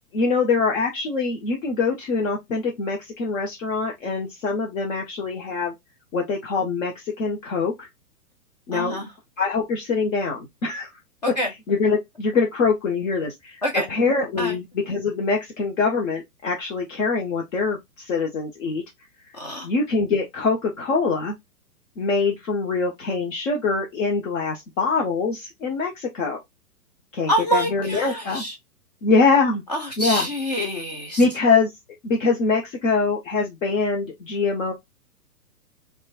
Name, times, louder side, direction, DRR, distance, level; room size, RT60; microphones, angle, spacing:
voice 1, 0.1-5.7 6.1-7.9 8.7-9.0 9.4-10.9 11.7-13.6 13.9-18.8 19.6-21.3 22.0-26.4 27.1-28.4 29.0-29.6 30.0-30.3 31.2-31.7 32.0-34.7, left 4 dB, 55° left, 0.9 m, -23 dB
voice 2, 8.7-9.1 11.2-11.5 13.6-13.9 14.4-14.6 19.3-19.7 27.3-28.6 29.7-31.2, equal, 30° left, 0.3 m, -26 dB
2.9 x 2.2 x 2.4 m
hypercardioid pair, 130°, 47 cm